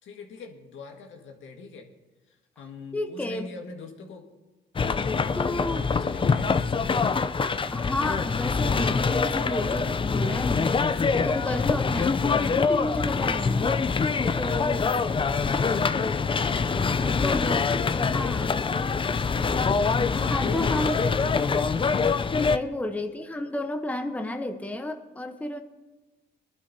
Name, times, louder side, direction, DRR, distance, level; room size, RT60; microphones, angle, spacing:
voice 1, 0.0-1.9 2.3-4.3 5.5-6.8 16.7-18.5 20.1-21.5 23.0-23.5, left 4 dB, 75° left, 3 dB, 1.8 m, -42 dB
voice 2, 2.9-3.5 5.3-5.8 7.4-13.7 14.4-14.9 17.0-17.7 17.9-18.6 20.1-21.0 22.3-25.6, left 1 dB, 5° left, 5 dB, 0.9 m, -32 dB
sound 1, 4.8-22.6, left 5 dB, 25° left, 0.5 m, -25 dB
22.0 x 11.5 x 2.8 m, 1.2 s
cardioid pair, 90°, 20 cm